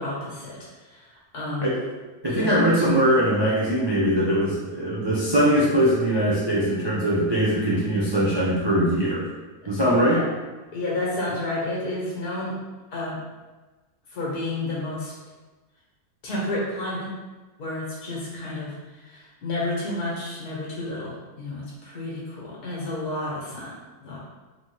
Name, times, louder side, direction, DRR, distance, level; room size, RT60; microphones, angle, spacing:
voice 1, 0.0-1.8 2.3-2.5 9.9-10.2 10.7-12.5 12.9-13.2 14.1-15.1 16.2-17.1 17.6-23.7 24.0-24.2, left 2 dB, 75° left, -5 dB, 1.7 m, -31 dB
voice 2, 2.2-9.3 9.7-10.2, equal, 40° right, -8 dB, 0.3 m, -21 dB
4.0 x 2.9 x 3.1 m, 1.2 s
omnidirectional pair, 1.7 m